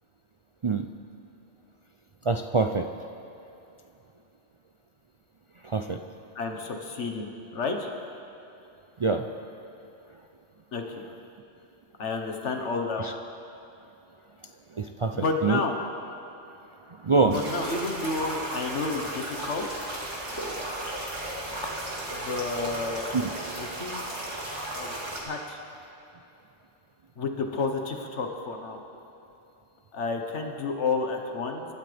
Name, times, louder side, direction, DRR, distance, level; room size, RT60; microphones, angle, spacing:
voice 1, 2.2-2.9 5.6-6.0 9.0-9.3 13.0-13.1 14.7-15.6 16.9-17.3 23.1-23.3, right 4 dB, 50° right, 5 dB, 0.3 m, -25 dB
voice 2, 6.3-7.9 10.7-11.0 12.0-13.2 15.1-15.8 17.3-19.8 22.1-23.1 23.6-24.0 24.7-24.9 25.2-25.6 27.2-28.8 29.9-31.7, left 4 dB, 75° left, 3 dB, 1.6 m, -31 dB
sound 1, 17.3-25.2, right 1 dB, 85° right, 3.0 m, -35 dB
25.5 x 13.0 x 3.4 m, 2.9 s
omnidirectional pair, 1.2 m